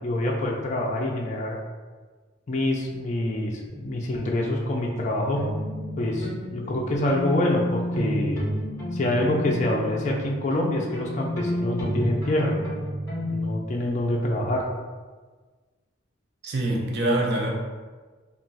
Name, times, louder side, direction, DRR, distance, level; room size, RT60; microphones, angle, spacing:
voice 1, 0.0-1.6 2.5-5.4 6.0-8.4 8.9-12.5 13.3-14.6, left 1 dB, 35° left, -1 dB, 0.3 m, -26 dB
sound 1, 5.3-13.5, equal, 15° left, 0.9 m, -31 dB
voice 2, 16.4-17.5, right 1 dB, 55° right, -1 dB, 0.5 m, -24 dB
2.3 x 2.3 x 3.8 m, 1.4 s
head